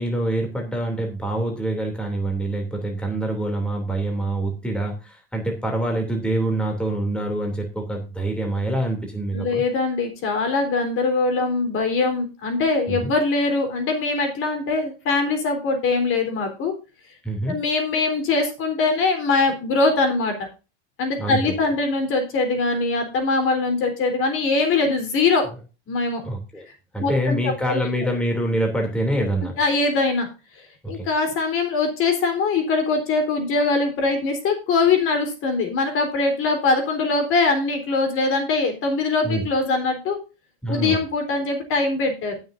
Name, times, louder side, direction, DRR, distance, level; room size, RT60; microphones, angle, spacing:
voice 1, 0.0-9.6 12.9-13.1 17.2-17.6 21.2-21.6 26.2-26.7 26.9-29.5 30.9-31.1 39.2-39.4 40.6-41.0, right 1 dB, 5° left, 1 dB, 2.9 m, -25 dB
voice 2, 9.3-16.7 17.5-20.5 21.0-25.5 25.9-26.2 27.0-27.8 29.6-30.3 30.9-40.2 40.7-42.4, left 3 dB, 45° left, 5 dB, 3.8 m, -22 dB
18.5 x 6.6 x 2.6 m, 0.31 s
supercardioid pair, 125°, 30 cm